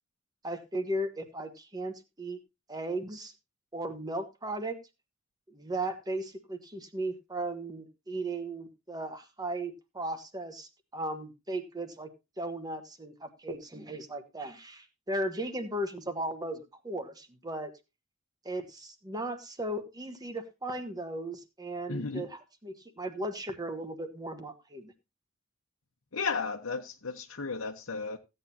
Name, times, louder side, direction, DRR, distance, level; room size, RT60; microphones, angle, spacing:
voice 1, 0.4-2.4 2.7-3.3 3.7-4.8 5.5-12.1 12.4-17.7 18.4-24.9, right 1 dB, 20° right, 1.4 m, -36 dB
voice 2, 21.9-22.3 26.1-28.2, left 4 dB, 80° left, 1.0 m, -34 dB
15.5 x 9.0 x 2.8 m
head